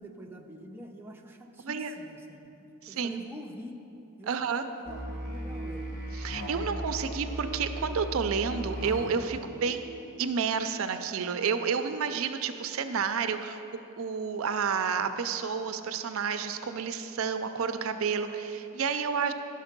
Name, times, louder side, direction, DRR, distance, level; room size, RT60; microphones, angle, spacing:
voice 1, 0.0-3.8 4.2-6.0 6.8-7.2 9.5-9.7, equal, 10° right, 1 dB, 0.5 m, -46 dB
voice 2, 2.8-3.2 4.3-4.6 6.2-13.6 14.0-19.3, right 6 dB, 70° right, 9 dB, 0.4 m, -30 dB
Musical instrument, 4.9-9.4, right 1 dB, 40° left, 1.3 m, -37 dB
11.0 x 6.6 x 5.2 m, 3.0 s
head